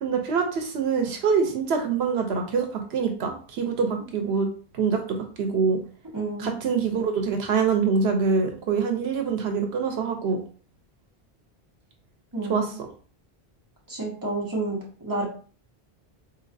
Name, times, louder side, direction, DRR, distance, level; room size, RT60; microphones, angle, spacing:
voice 1, 0.0-4.5 4.7-5.8 6.4-10.4 12.5-12.7, right 5 dB, 90° right, 4 dB, 0.9 m, -25 dB
voice 2, 6.1-6.6 12.3-12.8 13.9-15.2, right 2 dB, 20° right, -4 dB, 1.2 m, -30 dB
4.0 x 2.8 x 2.6 m, 0.41 s
omnidirectional pair, 1.0 m